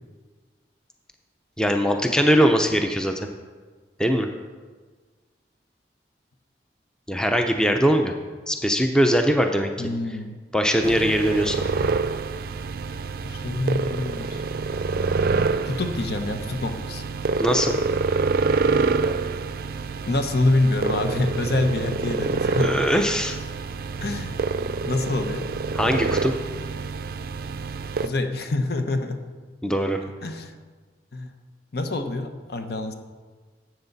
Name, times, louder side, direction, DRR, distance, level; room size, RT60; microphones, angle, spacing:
voice 1, 1.6-3.2 4.0-4.3 7.1-8.1 8.5-9.7 10.5-11.6 17.4-17.8 22.6-23.4 25.7-26.3 29.6-30.0, equal, 5° left, 5 dB, 0.6 m, -21 dB
voice 2, 9.8-10.4 13.2-14.4 15.6-17.0 20.1-22.9 24.0-24.3 24.8-25.5 28.0-29.2 30.2-30.5 31.1-31.3 31.7-32.9, left 2 dB, 60° left, 6 dB, 0.9 m, -26 dB
sound 1, 10.8-28.1, right 4 dB, 55° right, 0.4 m, -27 dB
12.5 x 8.0 x 4.0 m, 1.4 s
head